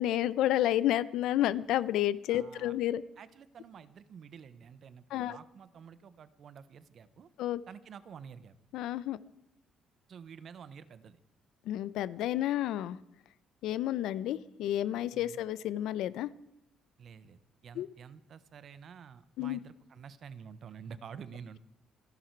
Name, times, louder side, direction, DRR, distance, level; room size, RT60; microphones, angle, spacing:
voice 1, 0.0-3.0 5.1-5.4 7.4-7.6 8.7-9.2 11.6-13.0 13.6-16.3 17.8-17.9 19.4-19.6, left 13 dB, 80° left, 18 dB, 0.7 m, -30 dB
voice 2, 2.3-2.7 3.2-7.3 7.7-8.6 10.1-11.2 15.1-15.4 17.0-21.6, right 7 dB, 45° right, 15 dB, 1.0 m, -49 dB
27.5 x 11.0 x 4.7 m, 0.82 s
cardioid pair, 165°, 0 cm